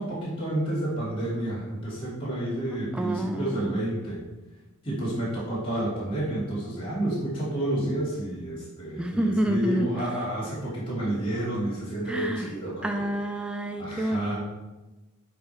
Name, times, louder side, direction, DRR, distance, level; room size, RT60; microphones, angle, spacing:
voice 1, 0.0-4.2 4.8-13.1 13.8-14.4, right 1 dB, 25° left, -8 dB, 2.6 m, -30 dB
voice 2, 2.9-3.8 9.0-9.9 12.1-12.5 12.8-14.4, right 1 dB, 5° right, 4 dB, 0.3 m, -28 dB
9.8 x 3.5 x 4.5 m, 1.1 s
head